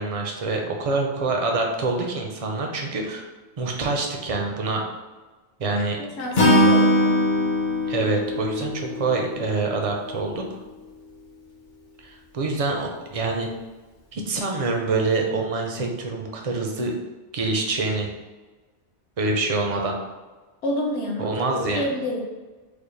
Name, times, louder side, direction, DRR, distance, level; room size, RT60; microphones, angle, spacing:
voice 1, 0.0-3.2 3.6-4.8 5.6-6.0 7.9-10.4 12.0-13.5 14.1-16.9 17.3-18.1 19.2-20.0 21.2-21.8, right 3 dB, 45° right, 2 dB, 0.5 m, -26 dB
voice 2, 5.6-7.1 20.6-22.2, left 1 dB, 70° left, -1 dB, 1.1 m, -29 dB
Acoustic guitar / Strum, 6.4-9.6, left 1 dB, 50° left, 0.7 m, -20 dB
5.0 x 2.1 x 3.1 m, 1.2 s
omnidirectional pair, 1.2 m